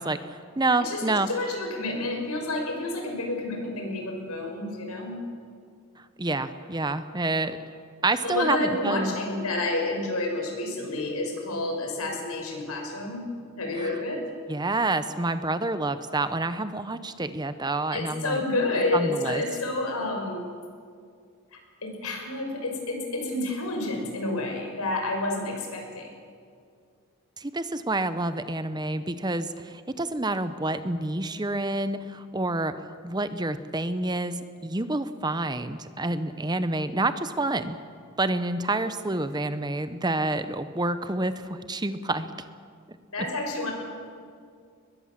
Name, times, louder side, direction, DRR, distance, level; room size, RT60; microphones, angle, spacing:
voice 1, 0.0-1.3 6.2-7.6 8.0-9.1 13.8-13.9 14.5-18.4 18.9-19.4 27.4-32.7 33.0-37.8 38.2-42.3 42.9-43.0, right 2 dB, 20° right, 11 dB, 0.8 m, -28 dB
voice 2, 0.8-5.2 8.2-13.3 13.6-14.2 17.9-20.4 21.8-26.1 43.1-43.7, left 2 dB, 90° left, 2 dB, 5.8 m, -29 dB
22.0 x 21.0 x 7.5 m, 2.2 s
head